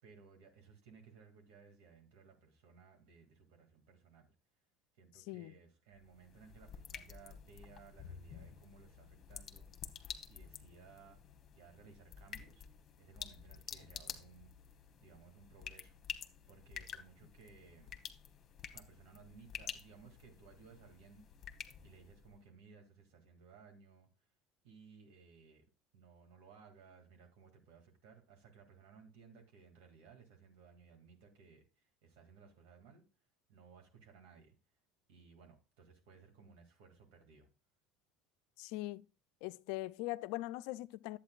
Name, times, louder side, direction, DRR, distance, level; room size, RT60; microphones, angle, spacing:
voice 1, 0.0-4.3 5.0-9.7 10.3-11.2 11.5-12.7 13.0-14.5 15.0-16.0 16.5-18.0 18.7-21.5 21.8-24.1 24.6-33.0 33.5-34.5 35.1-37.5, right 5 dB, 75° right, 2.4 m, -60 dB
voice 2, 5.2-5.5 38.6-39.0 39.4-41.2, left 18 dB, 75° left, 0.3 m, -41 dB
sound 1, 5.9-22.4, left 8 dB, 45° left, 1.0 m, -50 dB
10.5 x 8.4 x 2.4 m
hypercardioid pair, 85°, 0 cm